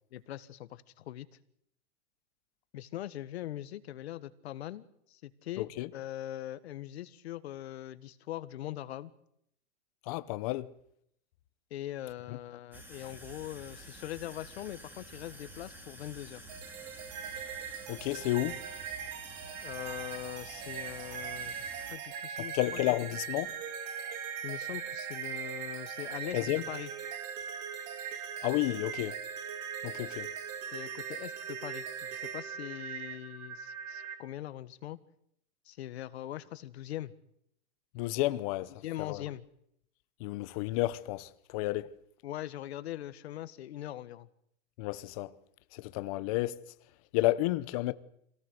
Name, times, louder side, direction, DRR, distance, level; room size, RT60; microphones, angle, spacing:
voice 1, 0.1-1.3 2.7-9.1 11.7-16.4 19.6-22.6 24.4-26.9 30.7-35.0 35.6-37.1 38.8-39.4 42.2-44.3, left 13 dB, 65° left, 1.6 m, -41 dB
voice 2, 5.6-5.9 10.1-10.7 17.9-18.6 22.5-23.5 26.3-26.6 28.4-29.2 29.8-30.3 37.9-39.2 40.2-41.9 44.8-45.3 45.7-46.6 47.1-47.9, left 18 dB, 30° left, 0.9 m, -31 dB
sound 1, 12.7-22.0, right 1 dB, 5° right, 2.3 m, -50 dB
sound 2, 16.5-34.2, right 7 dB, 40° right, 2.5 m, -40 dB
26.5 x 18.0 x 8.0 m
supercardioid pair, 170°, 35 cm